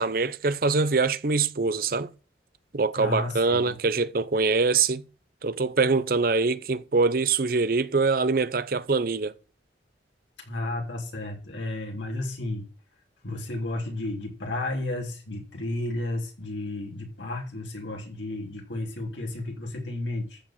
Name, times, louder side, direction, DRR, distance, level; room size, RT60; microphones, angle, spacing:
voice 1, 0.0-2.1 2.7-5.0 5.4-9.3, right 4 dB, 50° right, 0.7 m, -24 dB
voice 2, 2.9-3.8 10.5-12.7 13.2-20.4, left 2 dB, 85° left, 3.4 m, -32 dB
14.0 x 5.0 x 7.4 m
head